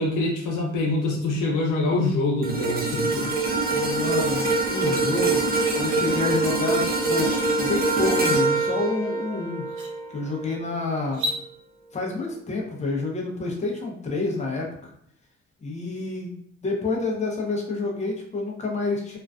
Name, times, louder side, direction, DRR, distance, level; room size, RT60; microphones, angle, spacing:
voice 1, 0.0-3.4, left 2 dB, 85° left, -1 dB, 0.7 m, -25 dB
sound 1, 2.4-10.8 11.2-11.4, right 3 dB, 30° right, 0.6 m, -24 dB
voice 2, 3.7-9.7 10.1-11.2 11.9-14.9 15.6-19.2, left 3 dB, 25° left, -1 dB, 0.6 m, -29 dB
sound 2, 7.2-7.4 9.0-9.1 9.6-9.9 11.0-11.4, left 1 dB, 80° right, 0.6 m, -32 dB
2.4 x 2.2 x 2.2 m, 0.65 s
cardioid pair, 90°, 30 cm